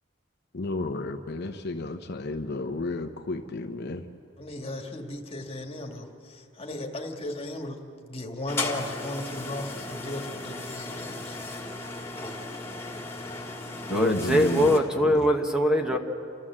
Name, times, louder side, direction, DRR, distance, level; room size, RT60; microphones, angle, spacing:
voice 1, 0.5-4.0 13.9-15.2, left 2 dB, 55° left, 5 dB, 0.8 m, -31 dB
voice 2, 4.4-11.5, left 1 dB, 30° left, 2 dB, 1.8 m, -36 dB
sound 1, 8.5-14.8, left 2 dB, 15° left, 2.1 m, -36 dB
voice 3, 13.8-16.0, equal, 5° right, 3 dB, 1.1 m, -22 dB
29.5 x 13.5 x 7.5 m, 2.6 s
head